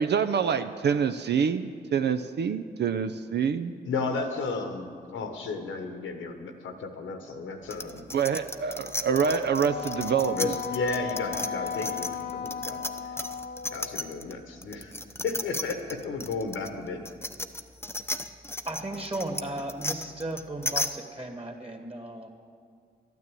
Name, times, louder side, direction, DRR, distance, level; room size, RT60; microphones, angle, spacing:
voice 1, 0.0-3.7 8.1-10.5, right 7 dB, 55° right, 9 dB, 0.5 m, -26 dB
voice 2, 3.8-8.0 9.2-9.6 10.4-12.8 13.7-15.0 15.2-17.0, left 3 dB, 75° left, 6 dB, 1.2 m, -33 dB
sound 1, 7.7-14.3 14.6-20.9, left 2 dB, 10° left, 0.8 m, -34 dB
Wind instrument woodwind instrument, 9.6-14.1, left 7 dB, 55° left, 0.9 m, -35 dB
voice 3, 18.7-22.3, right 1 dB, 30° right, 4 dB, 2.1 m, -35 dB
12.0 x 9.4 x 7.6 m, 2.1 s
supercardioid pair, 40°, 20 cm